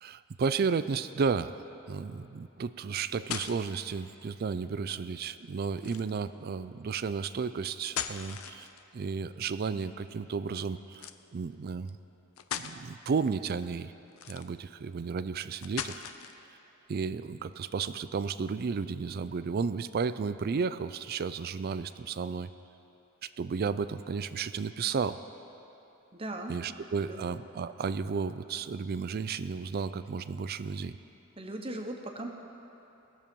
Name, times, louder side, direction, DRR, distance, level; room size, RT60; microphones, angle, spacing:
voice 1, 0.0-8.7 8.9-12.0 12.5-13.9 14.3-16.0 16.9-22.5 23.2-25.2 26.5-31.0, right 5 dB, 45° right, 13 dB, 0.4 m, -33 dB
sound 1, 2.9-3.9 5.8-6.3 7.7-9.0 10.9-11.2 11.9-12.0 12.4-12.8 14.1-14.7 15.6-16.4, left 9 dB, 85° left, 0.5 m, -38 dB
voice 2, 26.1-26.5 27.0-27.2 31.4-32.3, right 1 dB, 25° right, 3 dB, 1.0 m, -38 dB
20.0 x 7.1 x 5.3 m, 3.0 s
head